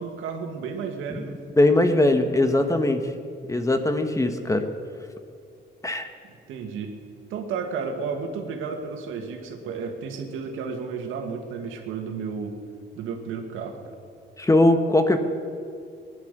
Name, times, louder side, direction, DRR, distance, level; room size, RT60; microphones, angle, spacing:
voice 1, 0.0-1.4 6.2-6.9 7.3-12.6 12.9-14.0, right 5 dB, 90° right, 4 dB, 1.9 m, -32 dB
voice 2, 1.6-3.1 3.5-4.6 5.8-6.1 14.4-15.2, left 2 dB, 15° left, 7 dB, 1.4 m, -20 dB
19.0 x 11.0 x 6.8 m, 2.3 s
cardioid pair, 90°, 20 cm